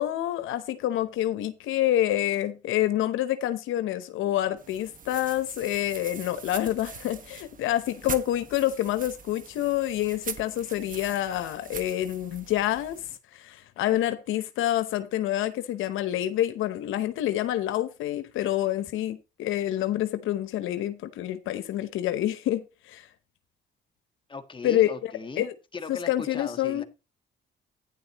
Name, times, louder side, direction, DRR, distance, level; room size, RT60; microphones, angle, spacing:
voice 1, 0.0-13.0 13.3-23.1 24.6-24.9 25.4-25.5 25.9-26.8, left 13 dB, 90° left, 0.9 m, -27 dB
sound 1, 4.6-13.2, right 6 dB, 45° right, 1.4 m, -42 dB
voice 2, 24.3-25.5 25.7-26.8, left 4 dB, 25° left, 1.6 m, -38 dB
11.5 x 9.9 x 3.0 m
cardioid pair, 90°, 20 cm